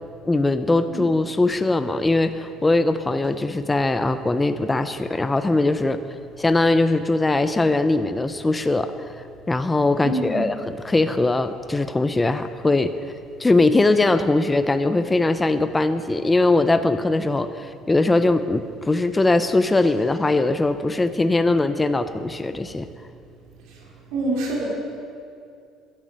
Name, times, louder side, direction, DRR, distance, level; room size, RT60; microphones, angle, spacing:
voice 1, 0.2-6.0 6.4-8.9 9.5-12.9 13.4-22.9, left 2 dB, 10° left, 10 dB, 0.4 m, -21 dB
voice 2, 10.0-10.4 24.1-24.6, right 2 dB, 90° right, -3 dB, 3.9 m, -25 dB
11.0 x 10.0 x 7.4 m, 2.4 s
cardioid pair, 160°, 0 cm